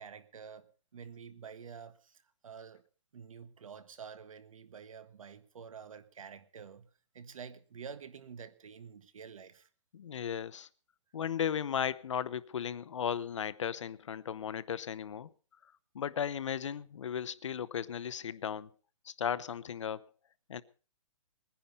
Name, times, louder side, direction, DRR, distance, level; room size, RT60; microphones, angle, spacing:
voice 1, 0.0-2.8 3.1-9.7, right 6 dB, 75° right, 1.6 m, -49 dB
voice 2, 9.9-10.7 11.1-15.3 15.9-18.7 19.0-20.0 20.5-20.6, left 8 dB, 60° left, 0.8 m, -36 dB
20.5 x 10.5 x 5.4 m
hypercardioid pair, 175°, 17 cm